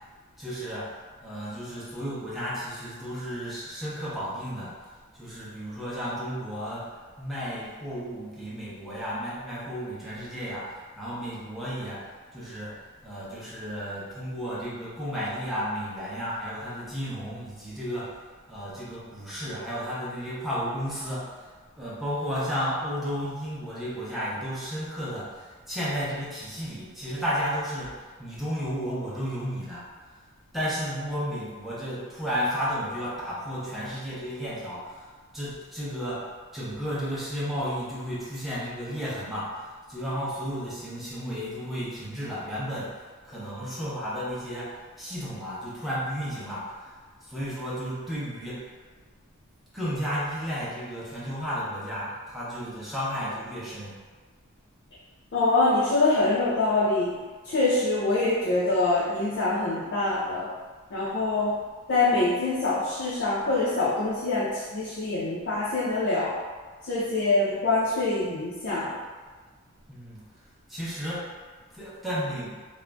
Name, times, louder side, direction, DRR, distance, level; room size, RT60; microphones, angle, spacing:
voice 1, 0.4-0.9 1.2-4.7 5.1-6.9 7.2-12.7 13.0-18.1 18.5-21.5 21.8-27.9 28.2-29.9 30.5-36.2 36.5-48.7 49.7-53.9 69.9-70.2 70.7-71.3 71.7-72.6, equal, ahead, -9 dB, 0.6 m, -33 dB
voice 2, 55.3-57.1 57.4-60.5 60.9-61.6 61.9-66.3 66.9-68.9, left 2 dB, 55° left, -8 dB, 0.5 m, -24 dB
2.4 x 2.1 x 3.3 m, 1.4 s
head